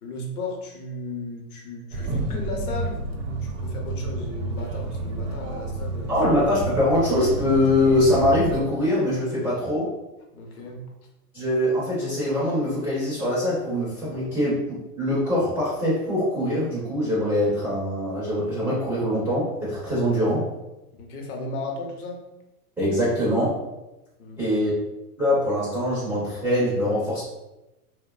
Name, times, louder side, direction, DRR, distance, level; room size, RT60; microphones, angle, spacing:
voice 1, 0.0-6.2 10.3-10.9 21.0-22.3 24.2-24.6, left 2 dB, 70° left, 1 dB, 0.8 m, -35 dB
sound 1, 1.9-8.6, right 2 dB, 70° right, 0.7 m, -30 dB
voice 2, 6.1-9.9 11.3-20.5 22.8-23.6 24.4-24.7 25.2-27.2, left 1 dB, 5° right, -11 dB, 0.3 m, -23 dB
2.7 x 2.2 x 2.2 m, 0.96 s
hypercardioid pair, 120°, 46 cm